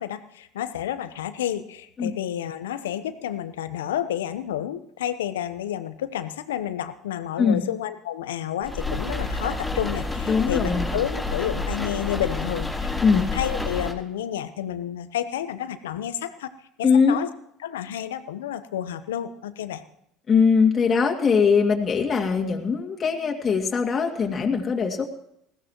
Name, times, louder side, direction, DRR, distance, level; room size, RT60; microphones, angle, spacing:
voice 1, 0.0-16.5 16.8-17.3 17.6-19.8, left 11 dB, 85° left, 12 dB, 0.9 m, -30 dB
sound 1, 8.6-13.9, left 2 dB, 5° left, 3.8 m, -29 dB
voice 2, 10.3-10.9 13.0-13.3 16.8-17.2 20.3-25.0, left 5 dB, 35° left, 0 dB, 2.4 m, -21 dB
20.5 x 15.5 x 3.1 m, 0.73 s
hypercardioid pair, 70°, 0 cm